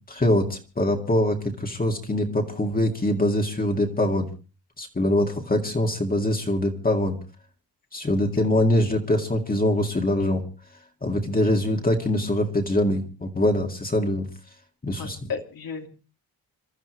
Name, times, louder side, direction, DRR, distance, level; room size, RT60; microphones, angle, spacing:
voice 1, 0.1-4.3 4.8-7.2 7.9-10.4 11.0-14.3 14.8-15.2, left 1 dB, 25° left, 2 dB, 2.2 m, -23 dB
voice 2, 8.3-8.6 11.5-11.8 15.0-15.9, left 6 dB, 65° left, 4 dB, 2.8 m, -36 dB
27.5 x 13.0 x 3.2 m, 0.34 s
wide cardioid pair, 120°, 38 cm